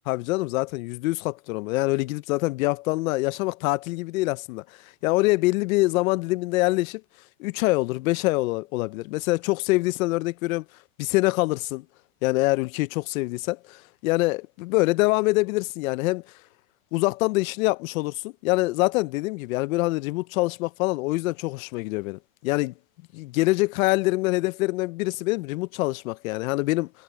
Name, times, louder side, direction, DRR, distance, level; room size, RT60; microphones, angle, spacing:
voice 1, 0.1-7.0 7.4-10.6 11.0-11.8 12.2-16.2 16.9-22.7 23.1-26.9, left 21 dB, 55° left, 0.6 m, -25 dB
supercardioid pair, 130°, 48 cm